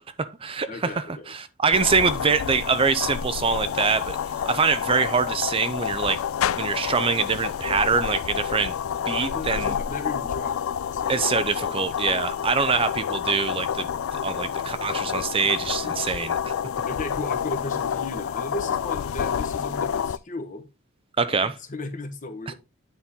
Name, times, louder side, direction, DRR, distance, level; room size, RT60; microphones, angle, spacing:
voice 1, 0.0-4.2 4.5-6.2 6.6-8.7 9.1-9.8 11.1-13.9 14.2-16.4 21.2-21.6 22.5-22.6, right 5 dB, 25° right, 0.4 m, -24 dB
voice 2, 0.7-1.3 9.1-11.3 11.6-12.0 15.8-16.2 16.9-20.7 21.3-22.5, left 2 dB, 40° left, 1.2 m, -36 dB
sound 1, 1.7-20.2, left 8 dB, 75° left, 0.4 m, -29 dB
9.5 x 4.1 x 3.7 m
head